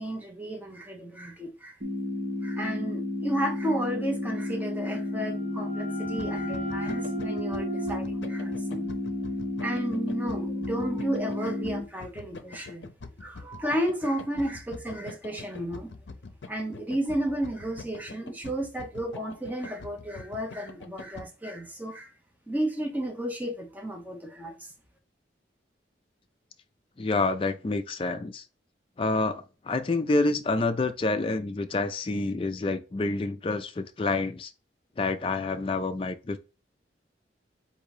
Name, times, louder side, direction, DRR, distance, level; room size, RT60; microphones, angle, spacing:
voice 1, 0.0-1.8 2.4-8.9 9.6-12.9 13.2-15.9 16.5-22.1 22.5-24.7, right 1 dB, 10° right, 0.8 m, -33 dB
sound 1, 1.8-11.8, left 2 dB, 50° right, 1.5 m, -32 dB
sound 2, 4.9-10.4, right 2 dB, 65° right, 1.3 m, -39 dB
sound 3, 6.0-21.3, left 3 dB, 75° left, 0.6 m, -44 dB
voice 2, 27.0-28.5 29.0-34.5 35.0-36.4, left 3 dB, 30° left, 0.4 m, -28 dB
3.8 x 2.7 x 4.7 m
head